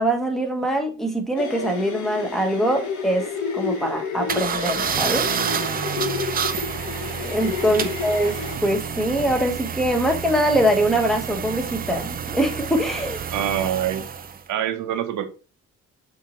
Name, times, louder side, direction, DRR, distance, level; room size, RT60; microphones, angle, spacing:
voice 1, 0.0-3.2 3.5-5.3 7.2-13.2, right 1 dB, ahead, 3 dB, 1.1 m, -23 dB
sound 1, 1.4-8.6, left 6 dB, 75° left, 1.2 m, -30 dB
sound 2, 4.3-14.4, right 7 dB, 30° right, 0.4 m, -29 dB
voice 2, 13.3-14.0 14.5-15.2, right 10 dB, 80° right, 9 dB, 0.8 m, -25 dB
5.8 x 2.8 x 2.9 m, 0.36 s
cardioid pair, 90°, 30 cm